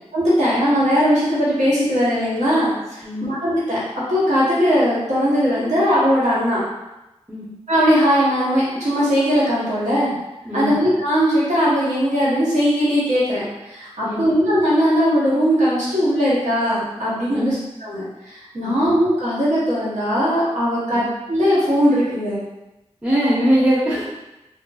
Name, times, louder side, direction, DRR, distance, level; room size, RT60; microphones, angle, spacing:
voice 1, 0.1-3.8 4.1-6.6 7.7-10.1 10.5-22.4, equal, 85° right, -9 dB, 0.9 m, -19 dB
voice 2, 10.4-10.8 14.0-14.3 17.3-17.6 18.6-18.8 20.9-21.1 23.0-24.0, equal, 10° right, -8 dB, 0.7 m, -21 dB
2.8 x 2.5 x 2.3 m, 0.97 s
wide cardioid pair, 50°, 12 cm